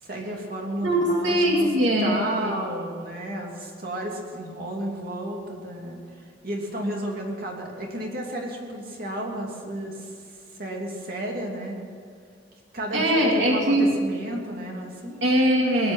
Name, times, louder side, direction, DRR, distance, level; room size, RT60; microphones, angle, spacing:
voice 1, 0.0-1.7 2.0-10.3 10.6-11.8 12.7-15.2, right 1 dB, 50° right, -1 dB, 2.9 m, -32 dB
voice 2, 0.8-2.5 12.9-13.9 15.2-15.9, equal, 75° right, -2 dB, 2.6 m, -21 dB
20.5 x 7.8 x 9.0 m, 2.1 s
head